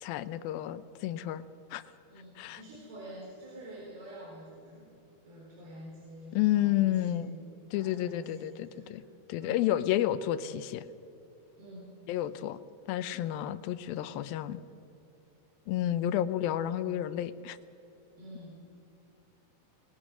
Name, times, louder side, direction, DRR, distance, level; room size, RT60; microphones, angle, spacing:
voice 1, 0.0-1.4 1.7-1.8 2.4-2.6 6.3-7.3 7.7-9.0 9.3-10.9 12.1-12.6 12.9-14.6 15.7-17.6, left 12 dB, 75° left, 13 dB, 2.4 m, -30 dB
voice 2, 2.1-4.9 5.2-7.4 7.7-9.0 9.4-9.7 11.6-11.9 18.1-18.6, equal, 75° right, -4 dB, 6.4 m, -48 dB
27.0 x 20.0 x 6.2 m, 2.5 s
omnidirectional pair, 4.5 m